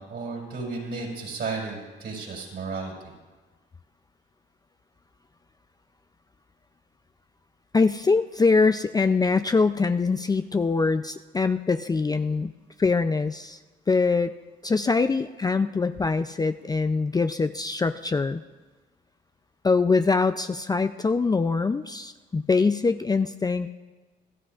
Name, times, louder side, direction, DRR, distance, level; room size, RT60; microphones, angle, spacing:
voice 1, 0.0-2.9, right 4 dB, 60° right, -2 dB, 5.5 m, -33 dB
voice 2, 7.7-12.5 12.8-13.6 13.9-14.3 14.6-18.4 19.6-23.7, left 4 dB, 20° left, 9 dB, 0.4 m, -23 dB
26.5 x 13.5 x 2.5 m, 1.3 s
cardioid pair, 90°, 20 cm